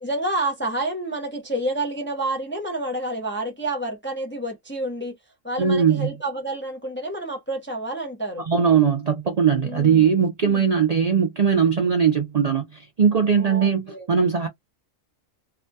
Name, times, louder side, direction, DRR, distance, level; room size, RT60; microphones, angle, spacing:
voice 1, 0.0-5.2 5.4-8.4 9.6-10.0 10.4-10.6 13.4-14.1, right 1 dB, 20° left, 0.3 m, -29 dB
voice 2, 5.6-6.1 8.4-14.5, right 7 dB, 90° right, 0.3 m, -20 dB
2.7 x 2.2 x 2.6 m
omnidirectional pair, 1.4 m